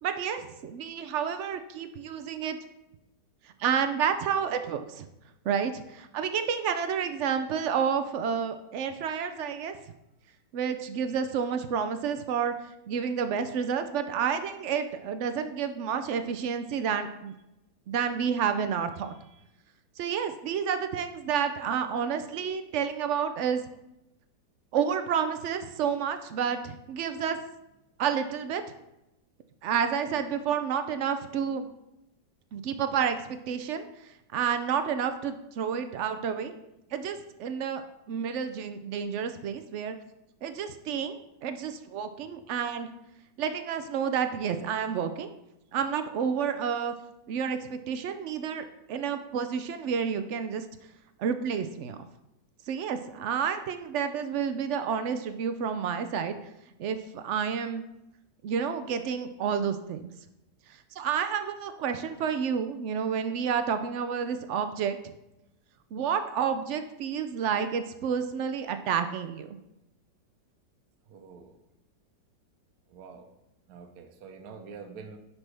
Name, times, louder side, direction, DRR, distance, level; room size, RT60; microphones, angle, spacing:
voice 1, 0.0-2.6 3.6-5.1 5.4-9.8 10.5-12.5 12.9-17.3 17.9-19.1 20.0-23.6 24.7-27.4 28.0-28.6 29.6-31.7 32.5-33.9 34.3-36.5 36.9-40.0 40.4-41.1 41.4-42.9 43.4-45.3 45.7-46.9 47.3-50.6 51.2-52.0 52.7-56.4 56.8-57.8 58.4-60.1 60.9-65.0 65.9-69.6, right 7 dB, 85° right, 9 dB, 0.6 m, -30 dB
voice 2, 19.1-19.4 71.1-71.6 72.9-73.3 73.7-75.2, right 5 dB, 65° right, 5 dB, 1.3 m, -46 dB
10.5 x 5.9 x 3.3 m, 0.88 s
omnidirectional pair, 1.9 m